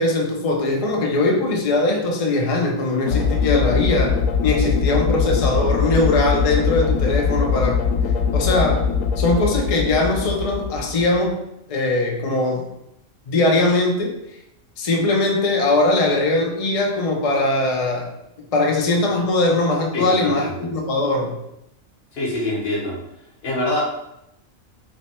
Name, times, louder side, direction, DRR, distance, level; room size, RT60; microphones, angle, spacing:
voice 1, 0.0-7.8 8.3-8.8 9.2-11.4 11.7-12.6 13.3-14.1 14.8-18.1 18.5-21.4, left 2 dB, 70° left, 0 dB, 0.3 m, -20 dB
sound 1, 3.1-11.3, left 6 dB, 85° left, 1.0 m, -21 dB
voice 2, 19.9-20.7 22.1-23.0 23.4-23.8, left 1 dB, 50° left, -3 dB, 1.1 m, -25 dB
3.4 x 2.1 x 4.1 m, 0.83 s
omnidirectional pair, 1.4 m